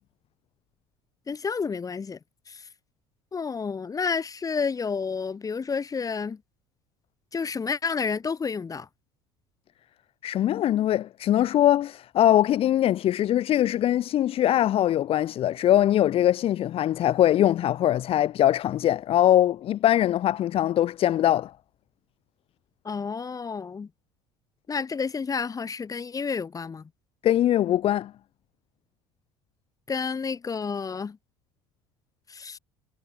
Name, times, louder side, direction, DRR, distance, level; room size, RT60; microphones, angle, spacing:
voice 1, 1.3-2.2 2.5-2.7 3.3-6.4 7.3-8.9 22.8-23.9 24.7-26.9 29.9-31.2 32.3-32.6, left 5 dB, 25° left, 4.3 m, -30 dB
voice 2, 10.2-21.5 27.2-28.1, left 12 dB, 45° left, 2.5 m, -22 dB
figure-of-eight pair, 60°, 14 cm